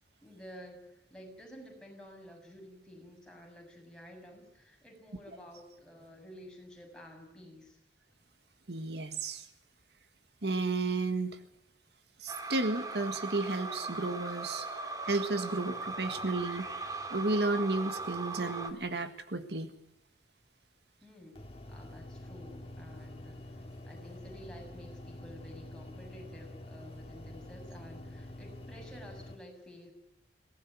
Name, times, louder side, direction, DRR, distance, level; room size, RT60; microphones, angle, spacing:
voice 1, 0.2-7.8 21.0-21.4 21.7-29.9, equal, 5° left, 0 dB, 6.9 m, -51 dB
voice 2, 8.7-9.5 10.4-11.4 12.2-14.7 15.0-16.7 17.1-19.8, right 2 dB, 75° right, 9 dB, 1.8 m, -32 dB
sound 1, 12.3-18.7, right 3 dB, 20° right, 2.3 m, -39 dB
sound 2, 21.4-29.4, left 1 dB, 35° left, 2.3 m, -47 dB
23.0 x 17.5 x 9.4 m, 0.88 s
head